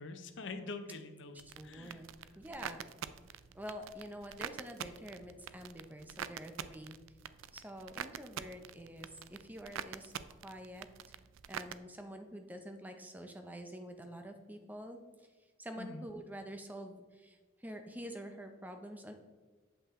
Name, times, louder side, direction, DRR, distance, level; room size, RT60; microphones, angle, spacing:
voice 1, 0.0-1.4 1.6-2.0 15.8-16.1, left 3 dB, 65° left, 8 dB, 0.7 m, -44 dB
sound 1, 1.4-11.7, right 9 dB, 85° right, 0.3 m, -46 dB
voice 2, 1.5-2.8 3.5-7.0 7.5-11.1 11.5-15.3 15.6-19.1, equal, 10° right, 5 dB, 0.6 m, -47 dB
7.7 x 5.5 x 3.6 m, 1.4 s
head